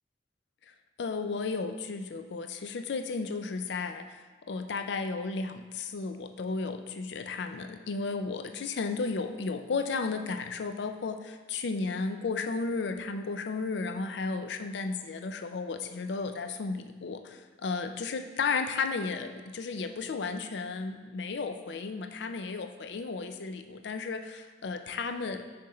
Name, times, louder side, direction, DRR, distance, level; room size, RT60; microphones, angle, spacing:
voice 1, 1.0-25.5, left 4 dB, 70° left, 8 dB, 0.4 m, -34 dB
5.8 x 5.2 x 4.2 m, 1.3 s
head